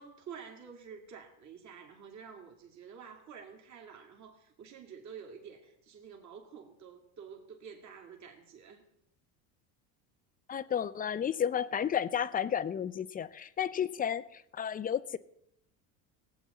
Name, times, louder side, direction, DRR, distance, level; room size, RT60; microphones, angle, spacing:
voice 1, 0.0-8.8, right 6 dB, 45° right, 2 dB, 2.5 m, -49 dB
voice 2, 10.5-15.2, left 8 dB, 20° left, 15 dB, 0.4 m, -32 dB
19.0 x 8.1 x 4.2 m, 0.78 s
supercardioid pair, 100°, 41 cm